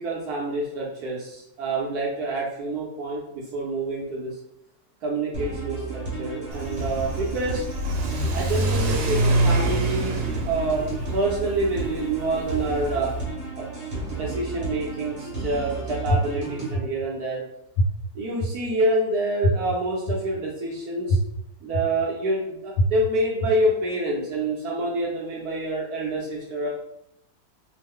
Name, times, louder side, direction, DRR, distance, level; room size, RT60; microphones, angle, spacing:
voice 1, 0.0-4.3 5.0-7.6 8.3-10.8 11.1-13.1 13.6-13.7 14.1-17.4 18.1-21.2 21.6-26.7, right 2 dB, 70° right, -3 dB, 1.0 m, -27 dB
sound 1, 5.3-16.8, right 3 dB, 35° right, 1.0 m, -33 dB
Car / Accelerating revving vroom, 6.5-13.2, right 1 dB, 90° right, 1.3 m, -26 dB
sound 2, 16.1-16.2 16.7-16.8 17.8-17.9 18.4-18.5 19.4-19.5 20.1-20.2 21.1-21.2 21.7-21.8 22.7-22.8 23.4-23.5, left 1 dB, 70° left, 1.0 m, -20 dB
3.0 x 2.0 x 3.5 m, 0.81 s
omnidirectional pair, 2.0 m